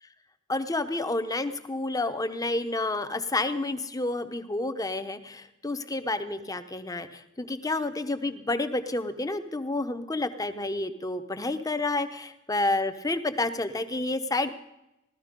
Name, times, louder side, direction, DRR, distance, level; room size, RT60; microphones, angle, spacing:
voice 1, 0.5-14.5, left 2 dB, 15° left, 10 dB, 0.8 m, -30 dB
16.0 x 12.5 x 5.2 m, 0.89 s
head